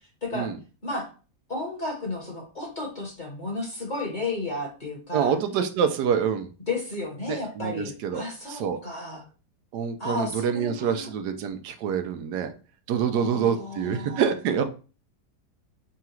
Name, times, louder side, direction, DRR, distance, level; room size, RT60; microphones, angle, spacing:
voice 1, 1.5-5.3 6.7-9.2 10.0-11.1 13.1-14.2, left 2 dB, 30° left, -1 dB, 1.2 m, -33 dB
voice 2, 5.1-6.5 7.3-8.2 8.5-8.8 9.7-12.5 12.9-14.6, right 7 dB, 80° right, 8 dB, 1.2 m, -26 dB
3.8 x 2.4 x 4.3 m, 0.35 s
omnidirectional pair, 1.7 m